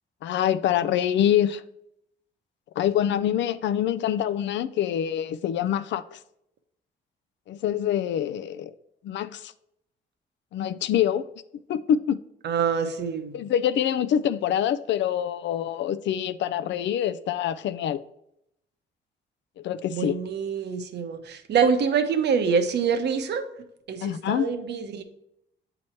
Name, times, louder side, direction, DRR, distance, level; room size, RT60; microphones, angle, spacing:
voice 1, 0.2-1.6 2.8-6.2 7.5-8.7 9.0-9.5 10.5-11.3 11.7-12.2 13.3-18.0 19.6-20.1 24.0-24.5, left 10 dB, 65° left, 0.4 m, -25 dB
voice 2, 12.4-13.4 19.9-23.5 23.9-25.0, right 6 dB, 60° right, 0.8 m, -25 dB
7.6 x 3.0 x 4.3 m
cardioid pair, 90°, 20 cm